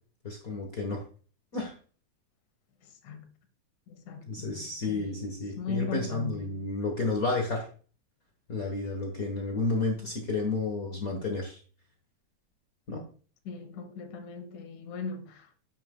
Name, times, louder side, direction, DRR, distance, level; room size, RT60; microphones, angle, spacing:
voice 1, 0.2-1.0 1.5-1.7 4.3-7.6 8.5-11.6 12.9-13.0, left 3 dB, 50° left, 1.0 m, -31 dB
voice 2, 3.9-5.2 5.6-6.3 13.5-15.6, left 6 dB, 90° left, 2.5 m, -38 dB
9.2 x 7.5 x 2.2 m
omnidirectional pair, 3.4 m